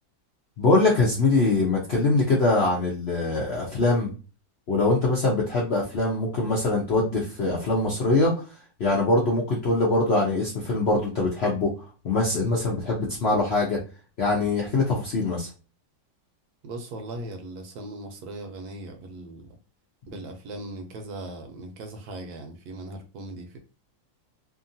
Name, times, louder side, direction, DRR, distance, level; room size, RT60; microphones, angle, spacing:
voice 1, 0.6-4.1 4.7-8.3 8.8-11.7 12.0-13.8 14.2-15.5, left 2 dB, 60° left, -3 dB, 0.6 m, -23 dB
voice 2, 16.6-19.5 20.1-23.6, right 2 dB, 70° right, 5 dB, 1.1 m, -38 dB
2.9 x 2.5 x 2.6 m, 0.35 s
omnidirectional pair, 1.8 m